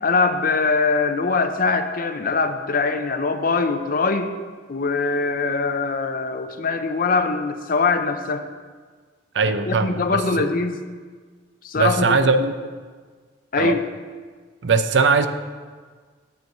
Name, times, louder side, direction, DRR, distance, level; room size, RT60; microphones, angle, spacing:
voice 1, 0.0-4.3 4.7-8.4 9.7-10.8 11.6-12.2 13.5-13.8, left 4 dB, 45° left, 8 dB, 0.6 m, -22 dB
voice 2, 9.3-10.5 11.7-12.5 13.6-13.8 14.6-15.3, right 4 dB, 65° right, 10 dB, 0.6 m, -20 dB
9.5 x 4.6 x 7.7 m, 1.5 s
head